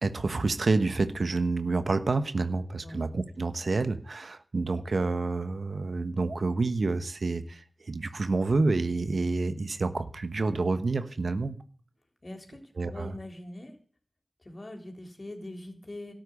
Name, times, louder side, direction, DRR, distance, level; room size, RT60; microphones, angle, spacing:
voice 1, 0.0-11.6 12.8-13.1, right 3 dB, 75° right, 11 dB, 1.2 m, -28 dB
voice 2, 12.2-13.7 14.4-16.1, left 1 dB, 50° left, 4 dB, 3.7 m, -42 dB
12.5 x 9.1 x 8.2 m, 0.43 s
cardioid pair, 40°, 0 cm